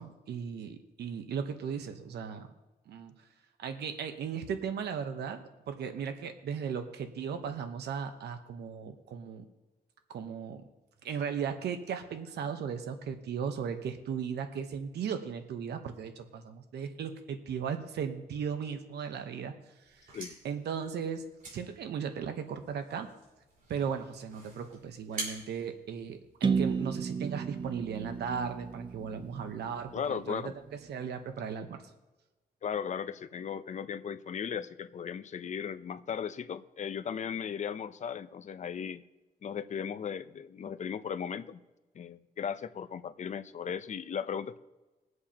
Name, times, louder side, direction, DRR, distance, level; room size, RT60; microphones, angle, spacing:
voice 1, 0.0-2.5 2.9-3.3 3.6-9.5 10.1-10.6 11.0-20.2 20.4-21.3 21.5-23.1 23.7-31.9, right 7 dB, 85° right, 7 dB, 1.0 m, -37 dB
sound 1, 19.8-26.7, right 2 dB, 55° right, 4.4 m, -46 dB
sound 2, 26.4-30.3, right 5 dB, 30° right, 0.5 m, -33 dB
voice 2, 29.9-30.5 32.6-39.0 39.4-41.6 41.9-44.6, left 7 dB, 45° left, 12 dB, 0.6 m, -37 dB
22.0 x 7.9 x 2.9 m, 1.1 s
cardioid pair, 120°, 17 cm